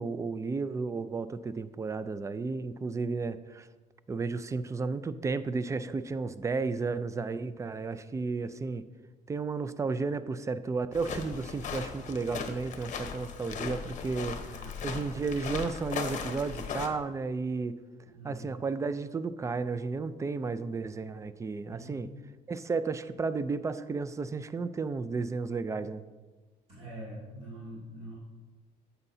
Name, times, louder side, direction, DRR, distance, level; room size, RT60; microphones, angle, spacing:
voice 1, 0.0-3.7 4.1-8.8 9.3-17.8 18.2-22.1 22.5-26.0, right 4 dB, 20° right, 14 dB, 0.4 m, -33 dB
sound 1, 10.9-16.9, left 6 dB, 45° left, 1.0 m, -38 dB
voice 2, 14.4-14.7 18.1-18.6 21.7-22.1 26.7-28.2, right 1 dB, 35° right, -8 dB, 2.4 m, -44 dB
9.6 x 8.1 x 2.7 m, 1.3 s
cardioid pair, 110°, 17 cm